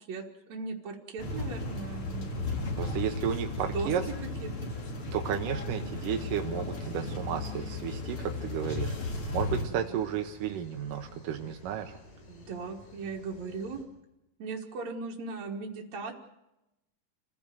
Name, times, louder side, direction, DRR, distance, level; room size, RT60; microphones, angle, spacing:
voice 1, 0.1-2.9 3.6-3.9 4.4-4.7 9.5-10.0 12.3-13.8 14.4-16.1, right 4 dB, 60° right, -3 dB, 2.8 m, -38 dB
sound 1, 1.2-9.6, left 3 dB, 40° left, 3.7 m, -35 dB
voice 2, 2.8-4.0 5.1-8.9 9.3-12.0, right 9 dB, 90° right, 4 dB, 2.8 m, -33 dB
sound 2, 7.9-13.8, left 2 dB, 80° left, 6.5 m, -53 dB
28.0 x 16.0 x 7.8 m, 0.93 s
omnidirectional pair, 3.7 m